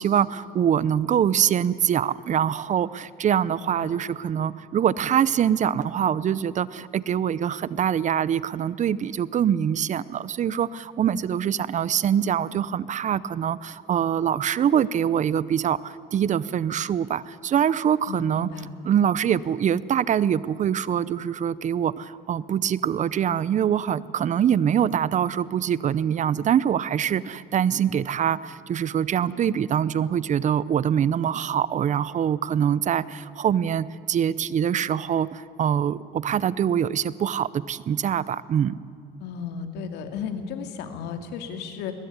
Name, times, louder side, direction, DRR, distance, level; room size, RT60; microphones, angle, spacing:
voice 1, 0.0-18.5 18.8-38.8, right 9 dB, 45° right, 19 dB, 0.7 m, -24 dB
voice 2, 3.6-3.9 18.1-18.7 39.2-41.9, left 6 dB, 85° left, 7 dB, 2.5 m, -34 dB
22.0 x 20.0 x 9.5 m, 2.4 s
cardioid pair, 110°, 17 cm